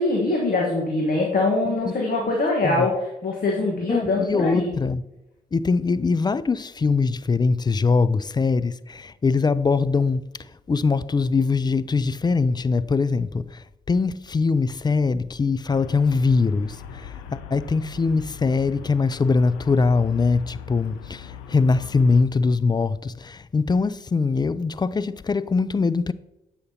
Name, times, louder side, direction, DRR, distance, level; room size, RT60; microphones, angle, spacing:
voice 1, 0.0-4.7, left 2 dB, 50° left, 1.4 m, -23 dB
voice 2, 3.9-5.0 5.5-10.3 10.7-26.1, left 4 dB, 20° left, 0.3 m, -22 dB
Traffic noise roadway noise, 15.7-22.2, left 7 dB, 85° left, 0.5 m, -40 dB
7.8 x 5.7 x 2.8 m
hypercardioid pair, 40°, 19 cm